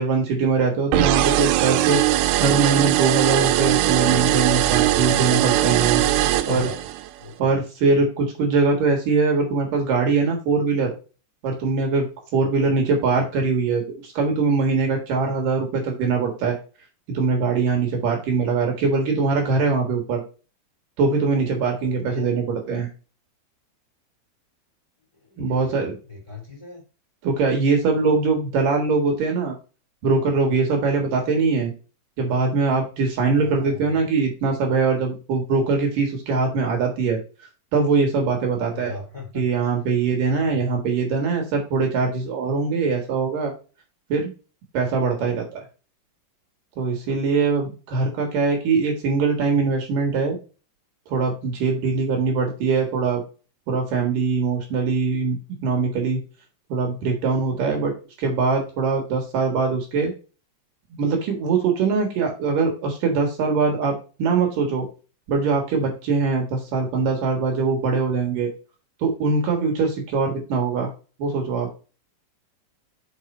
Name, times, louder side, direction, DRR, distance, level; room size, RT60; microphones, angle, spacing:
voice 1, 0.0-2.0 2.4-6.0 6.5-6.7 7.4-10.9 11.4-12.1 12.3-16.6 17.1-20.2 21.0-22.9 25.4-26.0 27.2-29.6 30.0-31.7 32.2-37.2 37.7-38.9 39.3-43.5 44.1-44.3 44.7-45.6 46.8-50.4 51.1-53.2 53.7-56.2 56.7-57.9 58.2-60.1 60.9-64.9 65.3-68.5 69.0-70.9 71.2-71.7, right 4 dB, 65° right, 2 dB, 2.3 m, -22 dB
sound 1, 0.9-7.1, right 14 dB, 80° right, 3.1 m, -20 dB
voice 2, 5.7-6.8 7.2-7.6 21.8-22.3 25.1-26.8 33.2-34.0 38.6-39.4 40.5-40.7, left 4 dB, 15° left, -1 dB, 1.3 m, -38 dB
6.4 x 5.0 x 4.3 m, 0.34 s
omnidirectional pair, 5.8 m